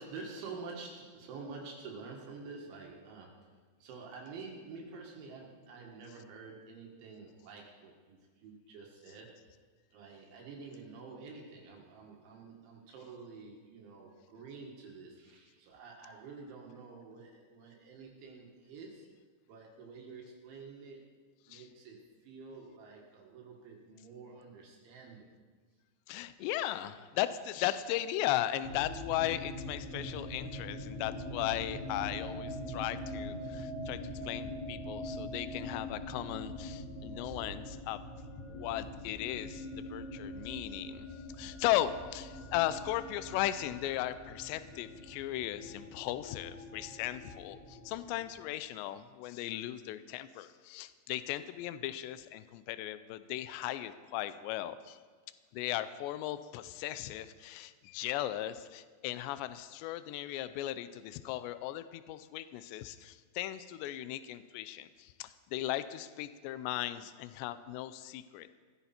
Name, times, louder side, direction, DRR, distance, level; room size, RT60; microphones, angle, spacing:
voice 1, 0.0-3.5 3.8-9.5 9.9-19.1 19.5-21.1 21.5-25.3, right 4 dB, 70° right, -1 dB, 4.0 m, -48 dB
voice 2, 26.1-38.0 38.5-41.1 41.4-55.0 55.5-68.5, left 13 dB, 85° left, 13 dB, 2.5 m, -37 dB
sound 1, 28.6-48.5, left 1 dB, 60° left, 6.1 m, -43 dB
18.0 x 15.0 x 4.4 m, 1.5 s
omnidirectional pair, 5.7 m